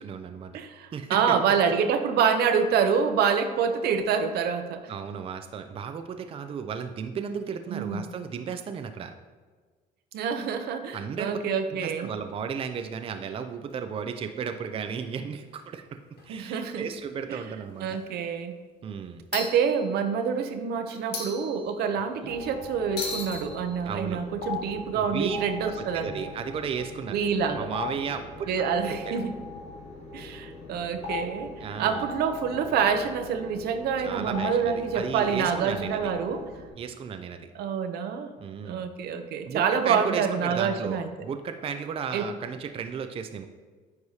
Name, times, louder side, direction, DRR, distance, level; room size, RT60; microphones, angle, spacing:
voice 1, 0.0-0.5 0.9-1.3 4.9-9.1 10.9-11.4 11.8-15.8 16.2-18.0 18.8-19.2 22.2-22.3 23.8-24.2 24.9-27.1 27.5-28.5 28.9-29.2 31.6-32.1 34.0-36.1 36.7-37.5 38.4-38.8 39.5-43.4, right 6 dB, 35° right, 7 dB, 0.4 m, -34 dB
voice 2, 0.5-4.8 7.7-8.1 10.1-12.1 16.3-16.9 17.3-17.4 17.8-18.6 19.3-26.3 27.1-27.7 28.5-29.3 30.1-31.5 31.8-36.4 37.5-38.3 38.6-41.1 42.1-42.2, right 6 dB, 70° right, 8 dB, 0.6 m, -27 dB
sound 1, 12.0-13.0 13.7-13.8 14.0-14.1 15.6-15.7 16.2-16.5 16.9-17.0 17.7-18.2 19.3-20.4 20.9-22.2 23.0-26.8, left 3 dB, 75° left, 1.6 m, -40 dB
sound 2, 22.3-36.7, left 3 dB, 40° left, 1.5 m, -40 dB
9.4 x 4.8 x 2.8 m, 1.4 s
cardioid pair, 110°, 17 cm